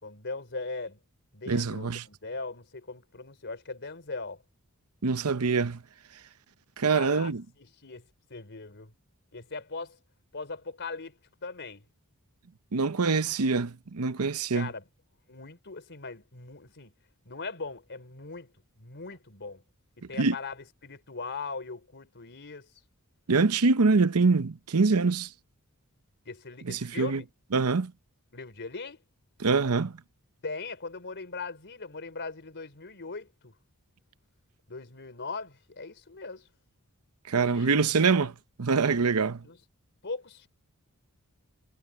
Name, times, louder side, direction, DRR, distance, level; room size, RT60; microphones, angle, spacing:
voice 1, 0.0-1.0 1.3-4.4 6.9-8.0 8.3-8.9 9.3-10.0 10.3-11.8 14.5-14.8 15.3-16.9 17.3-18.5 18.8-19.6 20.0-22.7 26.3-27.3 28.3-29.0 30.4-33.6 34.7-36.5 37.4-38.3 39.4-39.6 40.0-40.5, left 3 dB, 55° left, 4.1 m, -40 dB
voice 2, 1.5-2.0 5.0-5.8 6.8-7.4 12.7-14.7 20.2-20.3 23.3-25.3 26.7-27.2 27.5-27.9 29.4-30.0 37.3-38.3 38.6-39.4, right 4 dB, 80° right, 0.8 m, -24 dB
head